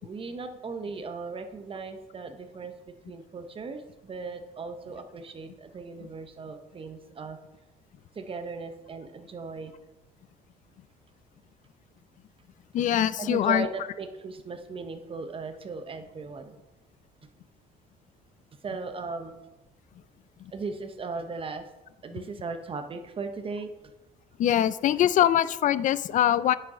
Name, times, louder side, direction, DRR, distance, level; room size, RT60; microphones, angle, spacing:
voice 1, 0.0-7.4 8.1-9.7 13.2-16.6 18.6-19.4 20.5-21.7 22.0-23.7, right 4 dB, 30° right, 8 dB, 0.8 m, -37 dB
voice 2, 12.7-13.7 20.4-20.5 24.4-26.6, left 11 dB, 50° left, 17 dB, 0.4 m, -23 dB
9.1 x 6.2 x 3.7 m, 1.0 s
cardioid pair, 110°, 17 cm